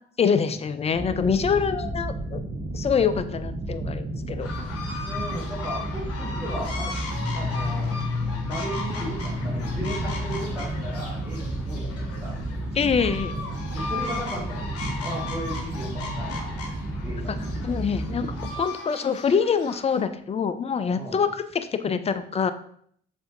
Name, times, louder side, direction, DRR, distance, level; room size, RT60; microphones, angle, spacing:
voice 1, 0.2-2.4 2.7-4.5 12.7-13.4 17.6-22.5, left 6 dB, 20° left, 12 dB, 0.3 m, -25 dB
sound 1, 0.9-18.5, right 2 dB, 30° right, 0.8 m, -32 dB
voice 2, 4.3-7.0 7.3-8.0 8.4-12.4 13.3-13.4 13.7-17.7 20.9-21.3, right 1 dB, 10° right, -6 dB, 1.2 m, -37 dB
sound 2, 4.4-20.0, left 4 dB, 55° left, 0.9 m, -37 dB
sound 3, 7.0-11.5 11.8-12.0 12.2-12.5 12.8-13.1 13.8-13.9 14.9-18.0, left 5 dB, 70° right, 1.1 m, -35 dB
6.8 x 2.5 x 2.5 m, 0.64 s
figure-of-eight pair, 40°, 29 cm